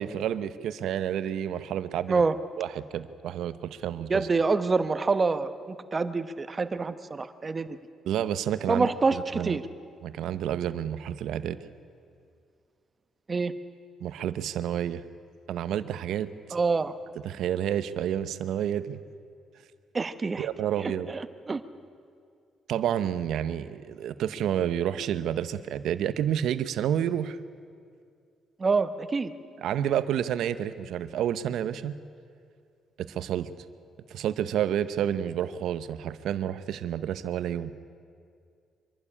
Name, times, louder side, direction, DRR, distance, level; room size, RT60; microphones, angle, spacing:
voice 1, 0.0-2.2 2.6-4.3 8.1-9.6 10.0-11.6 14.0-15.0 15.5-16.3 17.2-19.0 20.4-21.1 22.7-27.4 29.6-32.0 33.0-33.5 34.1-37.7, right 10 dB, 80° right, 13 dB, 0.8 m, -29 dB
voice 2, 4.1-7.7 8.7-9.6 13.3-13.5 16.5-16.9 19.9-20.5 20.8-21.6 28.6-29.3, right 4 dB, 30° right, 12 dB, 1.0 m, -26 dB
24.0 x 12.0 x 9.9 m, 2.3 s
cardioid pair, 90°, 0 cm